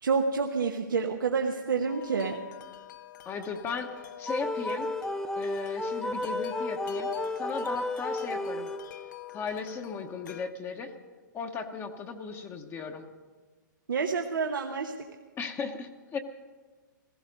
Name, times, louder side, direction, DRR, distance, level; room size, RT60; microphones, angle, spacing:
voice 1, 0.0-2.4 13.9-14.9, right 5 dB, 85° right, 2 dB, 1.0 m, -28 dB
Wind chime, 1.9-10.5, left 11 dB, 70° left, 0.8 m, -44 dB
voice 2, 3.2-3.9 4.2-4.9 5.4-7.1 7.4-8.7 9.3-10.9 11.3-13.1 15.4-16.2, left 5 dB, 20° left, 4 dB, 1.0 m, -36 dB
sound 1, 4.3-9.2, left 1 dB, 5° left, 0.4 m, -33 dB
16.0 x 15.0 x 5.3 m, 1.3 s
hypercardioid pair, 125°, 11 cm